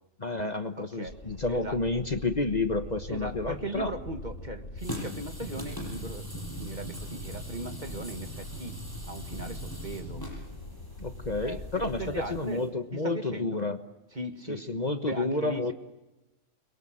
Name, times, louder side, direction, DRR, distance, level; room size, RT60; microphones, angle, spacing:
voice 1, 0.2-3.9 11.0-13.8 14.5-15.7, left 2 dB, 35° left, 8 dB, 1.3 m, -30 dB
voice 2, 0.8-1.2 1.5-1.8 3.1-6.3 6.6-8.8 9.1-10.2 11.3-13.6 14.1-14.7 15.0-15.7, right 1 dB, 35° right, 6 dB, 2.2 m, -38 dB
sound 1, 1.0-12.4, left 2 dB, 75° left, 3.6 m, -43 dB
sound 2, 4.8-12.7, right 1 dB, 15° left, 8.0 m, -41 dB
29.5 x 23.0 x 7.5 m, 1.0 s
omnidirectional pair, 1.3 m